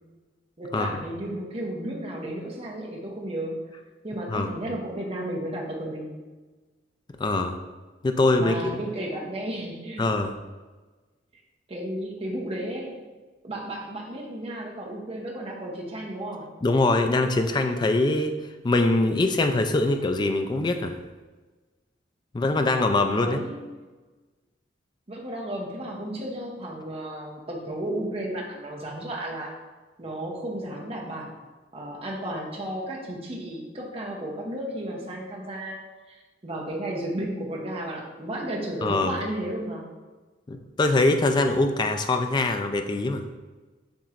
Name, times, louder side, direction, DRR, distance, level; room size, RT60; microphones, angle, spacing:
voice 1, 0.6-3.6 4.0-6.2 8.4-10.1 11.7-13.0 13.4-16.5 23.2-23.6 25.1-29.6 30.0-31.4 31.7-35.8 36.1-39.9, right 1 dB, 35° right, -1 dB, 0.8 m, -33 dB
voice 2, 7.2-7.6 8.0-8.8 10.0-10.3 16.6-18.4 18.6-20.9 22.3-23.4 38.8-39.2 40.5-43.3, left 2 dB, 25° left, 6 dB, 0.3 m, -23 dB
7.2 x 3.0 x 2.5 m, 1.3 s
head